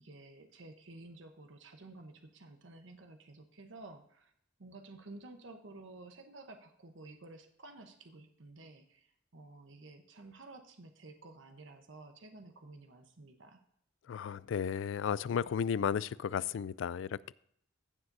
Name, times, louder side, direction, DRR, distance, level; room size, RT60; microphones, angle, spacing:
voice 1, 0.0-4.3 4.6-13.6, right 2 dB, 75° right, 5 dB, 0.9 m, -52 dB
voice 2, 14.1-17.3, left 7 dB, 75° left, 20 dB, 0.3 m, -34 dB
15.5 x 7.2 x 2.6 m, 0.71 s
head